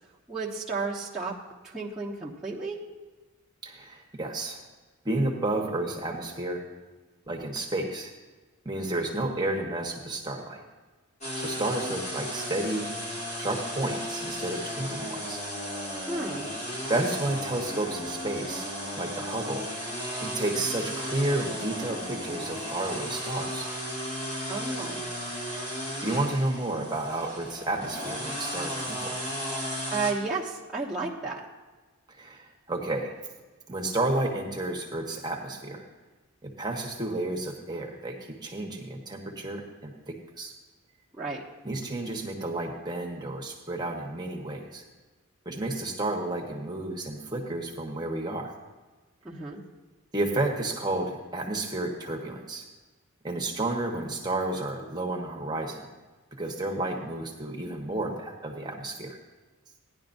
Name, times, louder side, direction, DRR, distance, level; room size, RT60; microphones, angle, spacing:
voice 1, 0.3-1.3 1.6-2.8 16.1-16.5 24.5-25.0 29.9-31.4 41.2-41.4 49.2-49.6, right 3 dB, 5° right, -8 dB, 1.1 m, -32 dB
voice 2, 3.6-4.6 5.0-6.6 7.3-8.1 8.6-10.6 11.4-12.9 13.4-15.4 16.9-18.7 19.0-19.7 20.2-23.7 26.0-29.1 32.2-33.2 33.7-35.8 36.4-40.5 41.6-44.8 45.4-48.5 50.1-52.6 53.2-55.9 56.4-59.2, right 2 dB, 20° right, 0 dB, 1.2 m, -31 dB
sound 1, 11.2-30.1, equal, 30° left, 2.4 m, -35 dB
17.0 x 11.0 x 2.7 m, 1.3 s
head